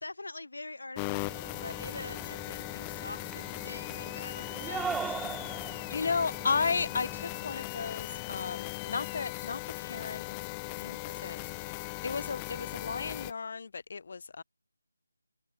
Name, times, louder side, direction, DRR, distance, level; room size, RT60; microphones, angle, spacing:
voice 1, 0.0-5.2, left 2 dB, 75° left, 3.9 m, -44 dB
sound 1, 0.9-13.3, left 28 dB, 15° left, 2.0 m, -39 dB
sound 2, 1.1-7.7, right 6 dB, 5° right, 3.2 m, -41 dB
voice 2, 5.7-10.4 10.7-14.4, left 5 dB, 50° left, 1.6 m, -34 dB
figure-of-eight pair, 160°, 0 cm